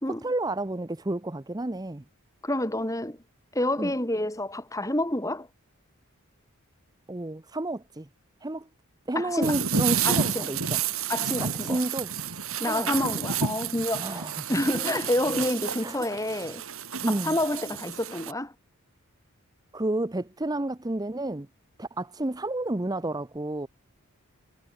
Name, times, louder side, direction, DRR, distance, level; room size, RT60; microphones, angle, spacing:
voice 1, 0.1-2.0 3.8-3.9 7.1-8.1 8.4-8.7 9.1-10.8 11.4-12.1 12.6-12.9 14.0-14.6 14.8-15.0 15.8-16.0 17.0-17.4 19.7-21.5 21.8-23.7, right 2 dB, 15° right, 0.7 m, -31 dB
voice 2, 2.4-3.2 3.5-5.5 9.2-9.6 10.0-10.5 11.1-11.8 12.6-16.7 17.0-18.5, left 1 dB, 15° left, 3.7 m, -28 dB
sound 1, 9.4-18.3, right 6 dB, 70° right, 4.0 m, -30 dB
head